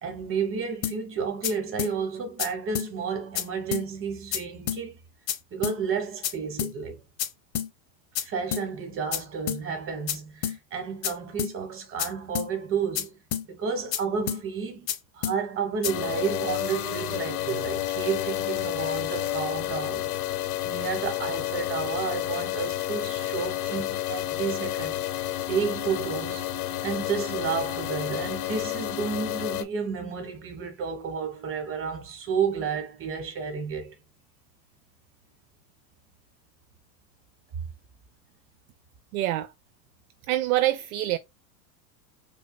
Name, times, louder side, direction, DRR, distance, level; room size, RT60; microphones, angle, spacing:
voice 1, 0.0-5.0 5.5-6.9 8.2-13.2 13.5-20.1 20.6-26.5 26.8-33.9, right 6 dB, 25° right, 1.2 m, -31 dB
sound 1, 0.8-1.0 1.4-1.5 1.8-1.9 2.4-2.5 2.8-2.9 3.4-3.5 3.7-3.9 4.3-4.4 4.7-4.8 5.3-5.4 5.6-5.8 6.2-6.3 6.6-6.7 7.2-7.3 7.6-7.7 8.2-8.3 8.5-8.7 9.1-9.2 9.5-9.6 10.1-10.2 10.4-10.6 11.0-11.1 11.4-11.5 12.0-12.1 12.4-12.5 13.0-13.1 13.3-13.5 13.9-14.0 14.3-14.4 14.9-15.0 15.2-15.4 15.8-15.9, left 9 dB, 35° left, 0.8 m, -29 dB
sound 2, 15.8-29.6, left 13 dB, 80° left, 0.8 m, -30 dB
voice 2, 39.1-39.5 40.3-41.2, right 15 dB, 65° right, 0.5 m, -25 dB
5.2 x 2.4 x 2.2 m
supercardioid pair, 130°, 46 cm